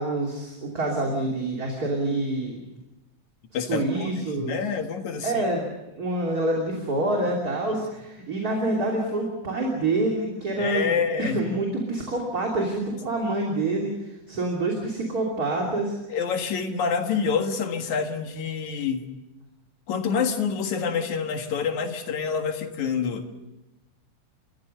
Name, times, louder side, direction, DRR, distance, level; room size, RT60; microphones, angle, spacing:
voice 1, 0.0-2.6 3.5-4.6 5.2-16.2, right 2 dB, 30° right, -1 dB, 3.3 m, -27 dB
voice 2, 3.5-4.1 4.3-5.4 10.6-11.4 16.1-19.0 19.9-23.4, left 6 dB, 70° left, 5 dB, 3.0 m, -27 dB
29.5 x 15.5 x 6.8 m, 0.99 s
omnidirectional pair, 3.5 m